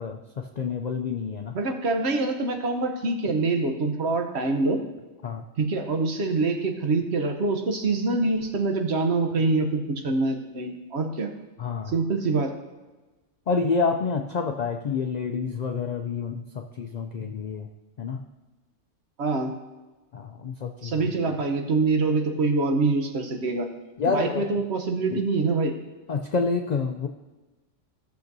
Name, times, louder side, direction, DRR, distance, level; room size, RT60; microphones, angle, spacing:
voice 1, 0.0-1.6 5.2-5.4 11.6-12.0 13.5-17.7 18.0-18.2 20.1-21.3 24.0-24.5 25.1-25.2 26.1-27.1, left 5 dB, 90° left, 5 dB, 0.3 m, -28 dB
voice 2, 1.5-4.8 5.6-11.3 11.9-12.5 19.2-19.5 20.8-23.7 24.1-25.7, right 3 dB, 60° right, 4 dB, 1.1 m, -25 dB
14.5 x 6.9 x 2.7 m, 1.2 s
omnidirectional pair, 1.3 m